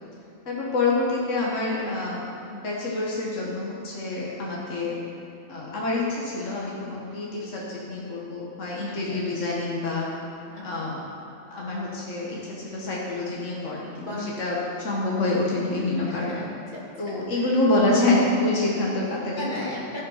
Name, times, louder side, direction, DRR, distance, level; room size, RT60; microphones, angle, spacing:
voice 1, 0.5-5.0 5.5-10.1 10.6-10.9 11.5-14.1 14.4-16.3 17.0-19.5, left 2 dB, 70° left, -4 dB, 1.9 m, -26 dB
voice 2, 8.9-9.2 10.5-10.9 14.1-14.3 15.2-15.3 16.0-17.6 19.3-20.1, left 1 dB, 35° left, -7 dB, 2.6 m, -37 dB
15.0 x 5.7 x 5.7 m, 2.7 s
omnidirectional pair, 1.3 m